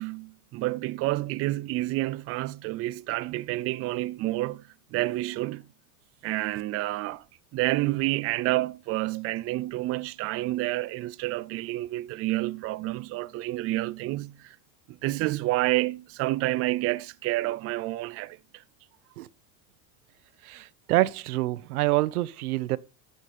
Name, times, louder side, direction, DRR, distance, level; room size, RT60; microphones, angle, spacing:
voice 1, 0.0-5.7 6.2-7.2 7.5-14.6 14.9-18.6, right 18 dB, 35° right, 0.5 m, -29 dB
voice 2, 20.4-22.8, right 17 dB, 85° right, 0.8 m, -26 dB
14.0 x 5.3 x 4.2 m
supercardioid pair, 115°, 43 cm